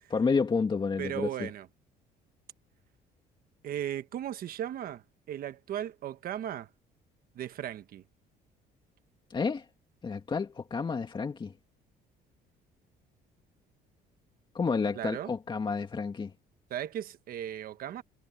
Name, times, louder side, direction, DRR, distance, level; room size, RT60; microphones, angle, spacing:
voice 1, 0.1-1.5 9.3-9.7 10.0-11.5 14.5-16.3, left 5 dB, 30° left, 2.2 m, -30 dB
voice 2, 1.0-1.7 3.6-5.0 5.3-6.7 7.3-8.0 15.0-15.3 16.7-18.0, right 11 dB, 60° right, 1.3 m, -36 dB
cardioid pair, 110°, 17 cm